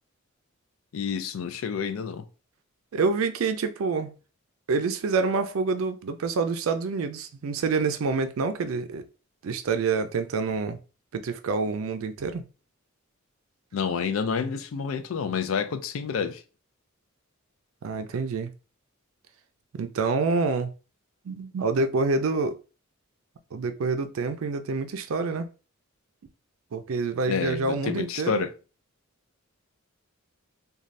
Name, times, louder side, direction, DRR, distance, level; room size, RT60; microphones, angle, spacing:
voice 1, 0.9-2.2 13.7-16.4 27.3-28.5, left 6 dB, 70° left, 0.4 m, -29 dB
voice 2, 2.9-4.1 4.7-9.1 9.4-10.8 11.1-12.4 17.8-18.5 19.7-20.7 21.2-22.6 23.5-25.5 26.7-28.4, right 4 dB, 75° right, 0.4 m, -27 dB
2.5 x 2.3 x 3.1 m
head